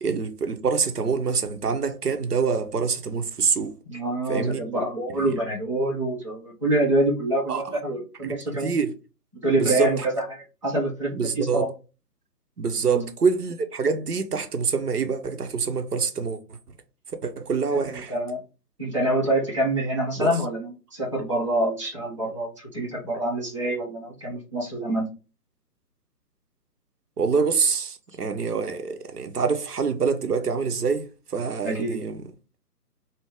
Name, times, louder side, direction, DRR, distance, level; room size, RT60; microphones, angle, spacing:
voice 1, 0.0-3.7 4.3-4.6 7.5-7.6 8.2-8.9 9.6-10.1 11.2-11.7 12.6-16.4 17.2-18.1 20.2-20.3 27.2-31.1 31.3-32.2, right 5 dB, 70° right, 0.8 m, -25 dB
voice 2, 3.9-8.7 9.4-11.7 12.8-13.1 17.9-18.4 18.8-25.1 31.6-32.0, right 1 dB, 20° right, 0.5 m, -26 dB
3.3 x 2.0 x 3.5 m
figure-of-eight pair, 140°, 48 cm